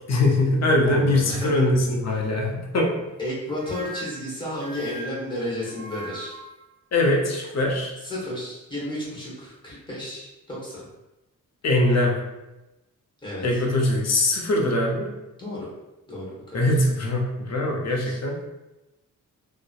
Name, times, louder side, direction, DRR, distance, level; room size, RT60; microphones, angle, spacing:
voice 1, 0.1-2.9 6.9-7.9 11.6-12.2 13.4-15.1 16.5-18.6, left 2 dB, 50° left, -1 dB, 0.6 m, -22 dB
voice 2, 0.8-1.6 2.1-2.2 3.2-6.4 8.0-10.8 13.2-13.6 15.4-15.7 16.1-16.7 18.0-18.2, left 1 dB, 15° left, -6 dB, 1.0 m, -33 dB
sound 1, 3.5-6.6, right 2 dB, 30° right, 0.4 m, -39 dB
2.7 x 2.1 x 2.3 m, 0.99 s
cardioid pair, 90°, 33 cm